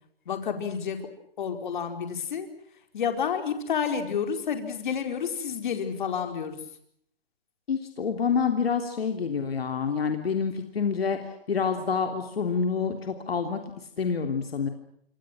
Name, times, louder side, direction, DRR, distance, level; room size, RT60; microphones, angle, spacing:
voice 1, 0.3-1.1 1.4-2.5 2.9-6.6, left 7 dB, 50° left, 6 dB, 4.8 m, -30 dB
voice 2, 7.7-11.2 11.5-13.6 14.0-14.7, left 6 dB, 75° left, 5 dB, 3.4 m, -27 dB
27.0 x 26.5 x 6.2 m, 0.71 s
hypercardioid pair, 155°, 30 cm